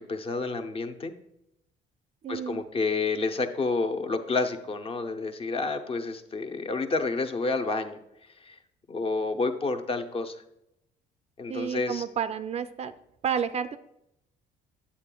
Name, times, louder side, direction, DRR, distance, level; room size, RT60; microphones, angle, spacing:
voice 1, 0.1-1.1 2.3-8.0 8.5-8.6 8.9-10.4 11.4-12.0, left 3 dB, 35° left, 7 dB, 0.6 m, -29 dB
voice 2, 2.2-2.6 11.5-12.9 13.2-13.8, right 7 dB, 40° right, 11 dB, 0.4 m, -30 dB
8.5 x 8.0 x 2.3 m, 0.82 s
cardioid pair, 110°, 17 cm